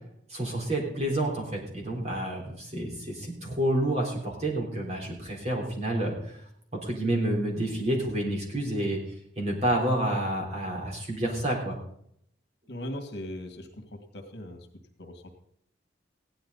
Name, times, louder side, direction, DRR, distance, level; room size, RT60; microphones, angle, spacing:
voice 1, 0.3-6.4 6.7-9.0 9.4-11.8, right 1 dB, 35° right, -1 dB, 3.8 m, -29 dB
voice 2, 12.7-14.7 15.0-15.3, left 1 dB, 65° left, 4 dB, 2.0 m, -39 dB
16.0 x 11.0 x 4.0 m, 0.69 s
head